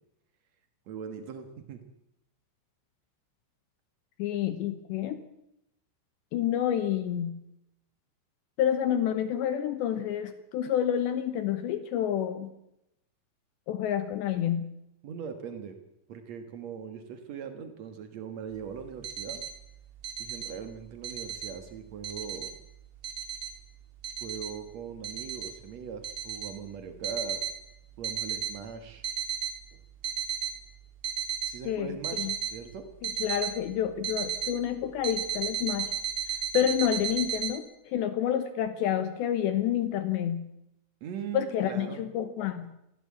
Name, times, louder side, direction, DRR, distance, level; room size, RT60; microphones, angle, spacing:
voice 1, 0.9-1.8 15.0-15.8 16.1-19.4 20.2-22.6 24.2-27.4 28.0-29.0 31.5-32.9 41.0-42.0, right 6 dB, 90° right, 7 dB, 1.5 m, -40 dB
voice 2, 4.2-5.2 6.3-7.4 8.6-12.5 13.7-14.7 31.7-31.9 32.2-32.3 33.2-35.9 36.5-40.5 41.3-42.7, left 10 dB, 75° left, 11 dB, 2.9 m, -29 dB
sound 1, 18.8-19.5 20.0-20.5 20.9-21.5 22.0-22.5 23.0-23.5 24.0-24.5 25.0-25.5 26.0-26.5 27.0-27.5 28.0-28.5 28.9-29.5 30.0-30.5 31.0-31.5 32.0-32.5 33.0-33.5 34.0-34.5 35.0-37.6, right 8 dB, 50° right, 1.8 m, -33 dB
22.0 x 15.5 x 8.6 m, 0.84 s
omnidirectional pair, 5.9 m